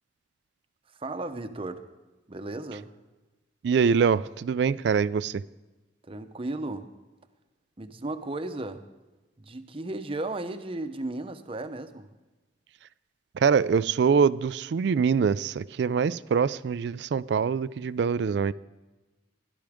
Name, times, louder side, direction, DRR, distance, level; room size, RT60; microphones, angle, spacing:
voice 1, 1.0-1.9 2.3-2.9 6.0-6.9 7.8-8.8 9.4-12.1, right 2 dB, 30° right, 9 dB, 0.7 m, -35 dB
voice 2, 3.6-5.4 13.4-18.5, right 6 dB, 65° right, 18 dB, 0.3 m, -24 dB
17.0 x 12.0 x 3.6 m, 1.2 s
head